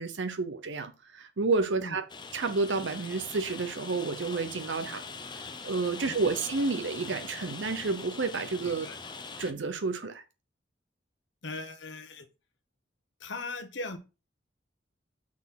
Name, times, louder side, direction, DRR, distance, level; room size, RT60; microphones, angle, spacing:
voice 1, 0.0-2.0 2.3-5.0 5.6-8.9 9.4-10.2, right 3 dB, 80° right, 0.7 m, -30 dB
Rain, 2.1-9.5, left 4 dB, 25° left, 0.6 m, -42 dB
voice 2, 8.6-9.0 11.4-12.3 13.2-14.0, left 3 dB, 80° left, 1.1 m, -39 dB
6.1 x 4.1 x 5.8 m
head